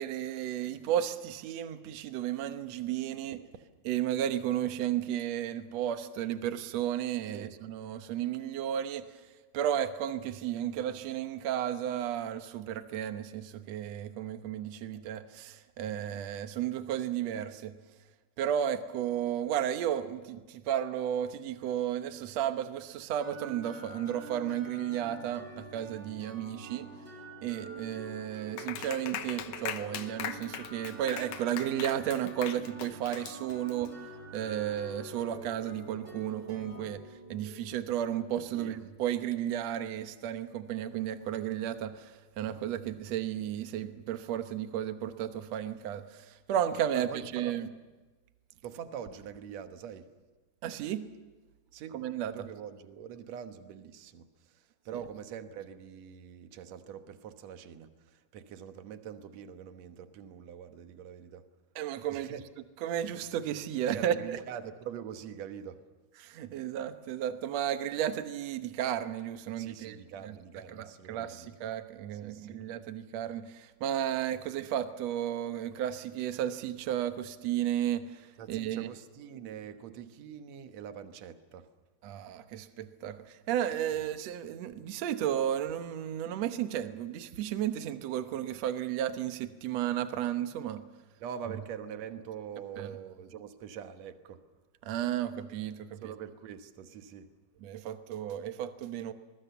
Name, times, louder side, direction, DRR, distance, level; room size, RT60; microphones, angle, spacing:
voice 1, 0.0-3.4 3.8-9.1 9.5-17.7 18.4-26.9 27.4-33.9 34.3-37.0 37.3-47.1 47.3-47.7 50.6-51.0 51.9-52.3 61.8-62.3 62.8-64.1 66.2-70.0 71.1-78.9 82.0-90.8 92.8-92.9 94.8-96.0 97.6-99.1, right 10 dB, 85° right, 9 dB, 1.5 m, -33 dB
sound 1, 23.2-38.8, right 2 dB, 25° right, 6.2 m, -47 dB
Clapping, 28.6-33.9, left 11 dB, 70° left, 2.4 m, -40 dB
voice 2, 38.5-38.8 46.9-47.5 48.6-50.1 51.7-52.0 52.3-61.5 62.1-62.5 63.9-65.8 69.6-71.6 72.1-72.6 78.4-81.7 83.9-84.1 91.2-94.4 96.0-97.3, right 8 dB, 60° right, 8 dB, 1.8 m, -44 dB
25.5 x 21.0 x 7.0 m, 1.3 s
omnidirectional pair, 4.7 m